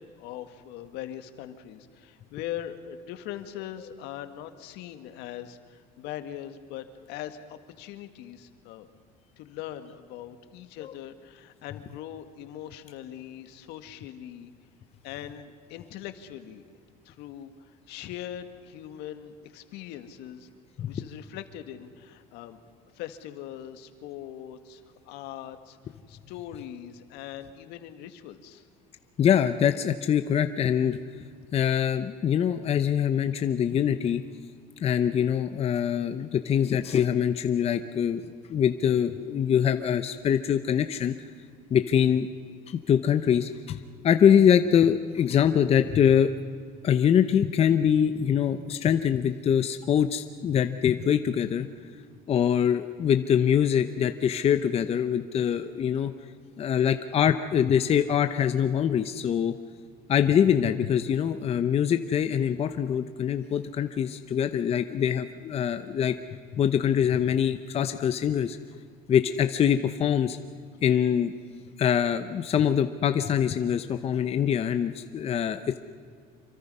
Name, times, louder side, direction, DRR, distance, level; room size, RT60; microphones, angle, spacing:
voice 1, 0.2-8.9 9.4-14.5 15.0-20.5 20.8-22.6 22.9-25.8 26.1-28.7, left 11 dB, 70° left, 9 dB, 1.8 m, -41 dB
voice 2, 29.2-31.0 31.5-34.2 34.8-41.1 41.7-42.3 42.7-46.3 46.8-51.7 52.3-56.1 56.6-59.5 60.1-66.1 66.5-68.6 69.1-70.4 70.8-71.3 71.8-75.8, left 8 dB, 35° left, 9 dB, 0.8 m, -24 dB
27.0 x 23.5 x 5.5 m, 2.1 s
cardioid pair, 120°, 18 cm